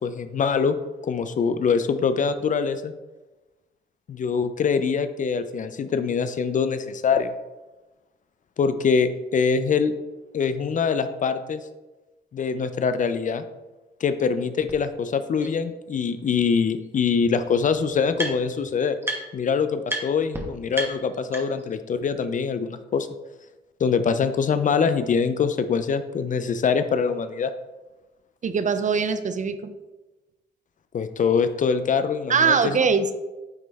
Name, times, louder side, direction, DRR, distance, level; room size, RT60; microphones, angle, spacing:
voice 1, 0.0-0.7 1.0-2.9 4.1-7.3 8.6-9.9 10.3-11.6 12.3-13.4 14.0-19.0 19.3-23.1 23.8-27.5 30.9-32.8, left 6 dB, 45° left, 11 dB, 0.5 m, -24 dB
sound 1, 14.7-14.8 15.4-15.5 16.8-16.9 17.1-18.6 19.0-19.5 19.9-20.0 20.3-20.4 20.7-21.7, right 1 dB, 15° right, 1.2 m, -32 dB
voice 2, 28.4-29.7 32.3-33.1, right 5 dB, 45° right, 11 dB, 0.5 m, -22 dB
9.2 x 3.1 x 3.4 m, 1.1 s
cardioid pair, 85°, 18 cm